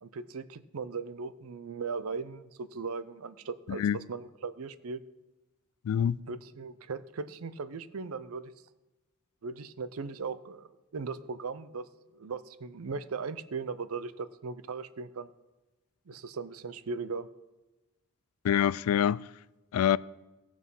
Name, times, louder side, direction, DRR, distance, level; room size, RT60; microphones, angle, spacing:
voice 1, 0.0-5.0 6.0-8.5 9.4-15.3 16.1-17.3, right 4 dB, 75° right, 0.6 m, -38 dB
voice 2, 5.8-6.2 18.4-19.3 19.7-20.0, left 9 dB, 85° left, 0.3 m, -25 dB
16.0 x 6.1 x 5.5 m
head